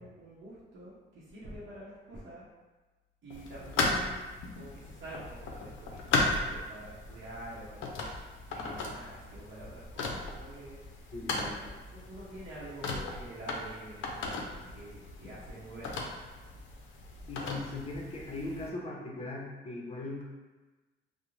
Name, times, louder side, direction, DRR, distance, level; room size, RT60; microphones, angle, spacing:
voice 1, 0.0-2.5 3.2-4.3 4.5-8.0 8.5-10.8 11.3-16.0, right 1 dB, 70° right, -8 dB, 0.7 m, -47 dB
sound 1, 3.3-18.7, left 3 dB, 75° left, 0.4 m, -36 dB
voice 2, 11.1-11.6 17.3-20.2, left 2 dB, 30° left, -3 dB, 0.7 m, -39 dB
2.4 x 2.0 x 3.0 m, 1.2 s
cardioid pair, 90°, 20 cm